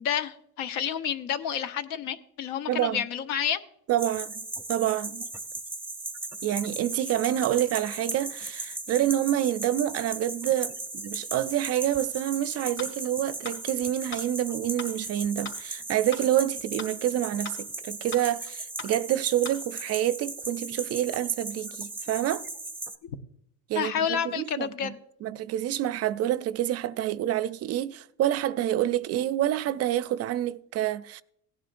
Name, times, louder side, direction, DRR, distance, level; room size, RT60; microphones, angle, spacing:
voice 1, 0.0-3.6 23.0-23.1 23.7-25.0, left 8 dB, 75° left, 1.1 m, -30 dB
voice 2, 2.7-3.0 3.9-5.3 6.4-22.4 23.7-24.9 25.2-31.2, right 12 dB, 50° right, 0.5 m, -27 dB
sound 1, 4.0-23.0, right 2 dB, 5° right, 0.6 m, -37 dB
sound 2, 12.8-12.9 13.4-13.6 14.1-14.2 14.8-14.9 15.4-15.6 16.1-16.2 16.8-16.9 17.4-17.6 18.1-18.2 18.8-18.9 19.4-19.6, left 2 dB, 40° left, 2.7 m, -38 dB
17.0 x 10.5 x 2.5 m
cardioid pair, 125°, 33 cm